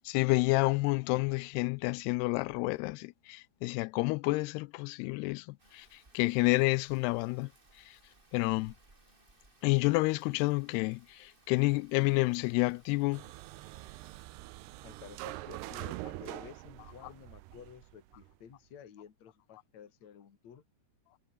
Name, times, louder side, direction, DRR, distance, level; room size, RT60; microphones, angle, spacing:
voice 1, 0.0-7.5 7.9-8.0 8.3-8.7 9.6-13.2, left 23 dB, 85° left, 2.5 m, -29 dB
Rain, 5.6-14.2, right 2 dB, 15° right, 3.0 m, -64 dB
sound 1, 13.1-18.3, right 18 dB, 85° right, 2.9 m, -44 dB
voice 2, 14.8-20.6, left 8 dB, 45° left, 3.6 m, -52 dB
omnidirectional pair, 4.8 m